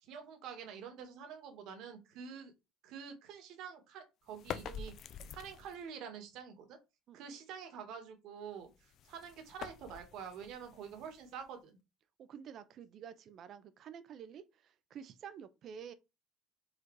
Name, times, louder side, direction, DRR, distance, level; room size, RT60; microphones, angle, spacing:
voice 1, 0.0-2.5 2.8-4.9 5.3-6.8 7.1-11.8, right 7 dB, 55° right, 1.7 m, -47 dB
sound 1, 4.3-5.9 8.6-11.6, left 8 dB, 40° left, 0.5 m, -47 dB
voice 2, 12.2-15.9, right 8 dB, 40° right, 0.6 m, -50 dB
4.9 x 4.0 x 4.7 m
cardioid pair, 175°, 0 cm